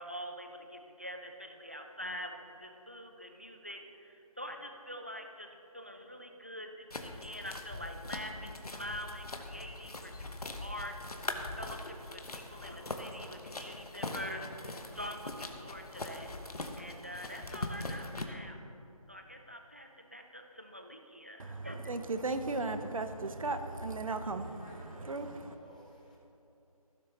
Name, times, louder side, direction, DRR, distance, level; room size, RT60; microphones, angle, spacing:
voice 1, 0.0-11.0 11.6-16.3 16.8-18.6 19.1-21.8, equal, 20° right, 4 dB, 0.4 m, -45 dB
sound 1, 6.9-18.2, left 2 dB, 75° left, 1.1 m, -42 dB
voice 2, 21.4-25.5, right 3 dB, 60° right, 9 dB, 0.8 m, -36 dB
voice 3, 24.4-26.2, left 1 dB, 10° left, -3 dB, 0.7 m, -57 dB
16.0 x 7.0 x 3.0 m, 2.9 s
figure-of-eight pair, 170°, 19 cm